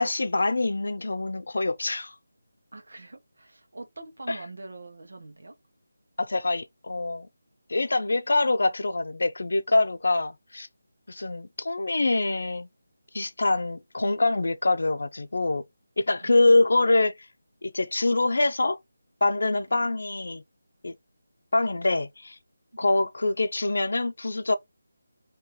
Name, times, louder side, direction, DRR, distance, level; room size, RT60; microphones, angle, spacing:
voice 1, 0.0-2.1 4.3-4.4 6.2-7.3 7.7-10.7 11.1-12.7 13.1-15.6 16.0-17.3 17.6-18.8 19.2-20.4 20.8-20.9 21.5-22.4 22.8-24.6, left 2 dB, 65° left, 0.6 m, -25 dB
voice 2, 2.7-5.5 16.2-16.4 22.7-22.9, right 2 dB, 70° right, 1.3 m, -43 dB
3.8 x 3.0 x 2.9 m
figure-of-eight pair, 175°, 0 cm